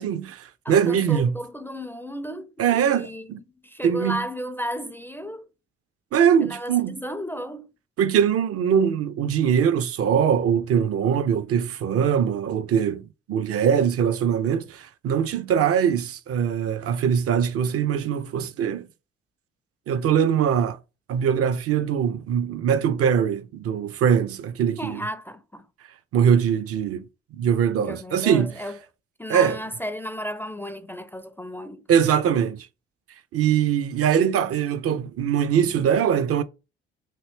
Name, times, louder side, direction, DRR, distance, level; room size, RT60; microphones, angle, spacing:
voice 1, 0.0-1.3 2.6-3.4 3.8-4.2 6.1-7.0 8.0-18.9 19.9-20.8 21.1-25.0 26.1-27.1 27.4-28.5 29.3-29.6 31.9-32.7 33.3-36.4, right 8 dB, 50° right, 0.4 m, -22 dB
voice 2, 0.6-3.3 3.6-5.5 6.4-7.7 24.8-25.7 27.8-28.8 29.2-31.8, equal, 5° left, 0.4 m, -34 dB
3.0 x 2.5 x 3.2 m
hypercardioid pair, 50°, 30 cm